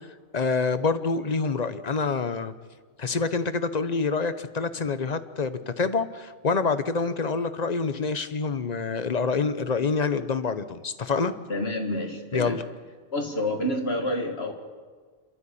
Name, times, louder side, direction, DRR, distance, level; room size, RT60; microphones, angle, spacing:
voice 1, 0.3-2.5 3.0-11.3 12.3-12.6, left 4 dB, 40° left, 12 dB, 0.9 m, -26 dB
voice 2, 11.5-12.6 13.1-14.5, left 1 dB, 60° left, 3 dB, 2.4 m, -28 dB
27.5 x 13.0 x 8.5 m, 1.5 s
omnidirectional pair, 1.2 m